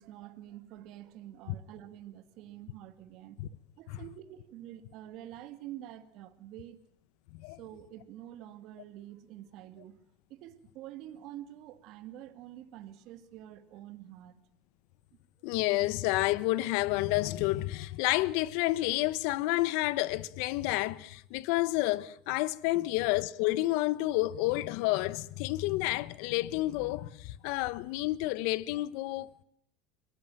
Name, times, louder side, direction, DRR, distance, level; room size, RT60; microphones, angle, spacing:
voice 1, 0.0-3.4 3.8-6.8 7.6-10.0 10.3-14.4 22.7-22.9, right 13 dB, 60° right, 2.2 m, -47 dB
voice 2, 15.4-29.4, left 18 dB, 70° left, 1.0 m, -30 dB
24.0 x 18.0 x 9.1 m
supercardioid pair, 110°, 0 cm